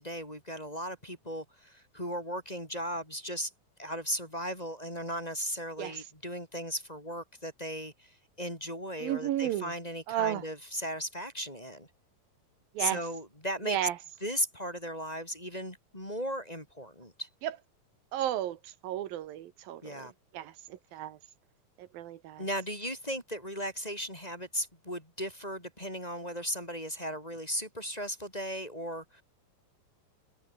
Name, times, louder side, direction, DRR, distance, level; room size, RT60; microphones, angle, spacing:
voice 1, 0.0-3.5 3.8-11.9 12.8-13.8 14.2-17.3 19.8-20.1 22.4-29.2, equal, 10° left, 4.0 m, -36 dB
voice 2, 9.0-9.7 10.1-10.4 12.7-13.0 13.6-14.0 17.4-17.6 18.1-20.1 20.3-21.2 21.8-22.4, right 12 dB, 80° right, 3.1 m, -33 dB
omnidirectional pair, 4.1 m